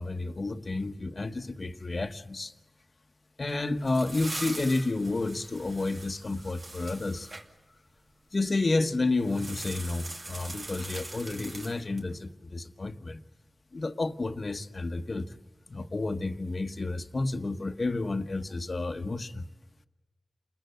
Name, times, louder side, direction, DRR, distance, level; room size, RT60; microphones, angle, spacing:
voice 1, 0.0-2.5 3.4-7.3 8.3-13.2 13.7-15.3 15.7-19.4, left 2 dB, 50° left, 1.3 m, -31 dB
sound 1, 3.5-7.5 9.2-12.1, right 2 dB, 55° right, 2.5 m, -42 dB
29.5 x 21.0 x 9.3 m
cardioid pair, 55°, 0 cm